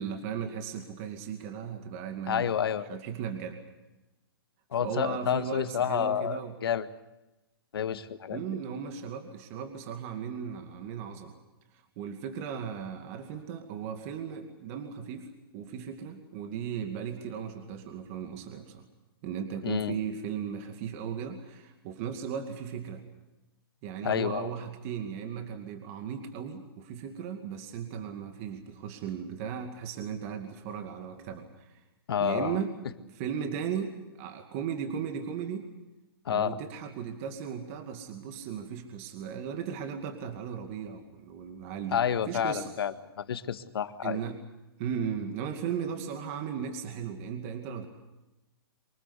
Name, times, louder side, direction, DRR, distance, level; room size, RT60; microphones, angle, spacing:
voice 1, 0.0-2.6 2.9-3.6 4.8-6.5 8.3-11.4 12.0-15.3 15.5-18.8 19.2-23.0 23.8-31.8 32.2-32.7 33.1-35.6 36.3-42.7 44.0-44.4 44.8-47.9, right 7 dB, 35° right, 5 dB, 2.3 m, -36 dB
voice 2, 2.3-3.0 4.7-6.9 7.7-8.4 19.6-20.0 24.0-24.5 32.1-32.6 36.3-36.6 41.9-44.2, left 8 dB, 75° left, 11 dB, 1.6 m, -29 dB
24.5 x 19.5 x 8.2 m, 1.0 s
hypercardioid pair, 155°, 13 cm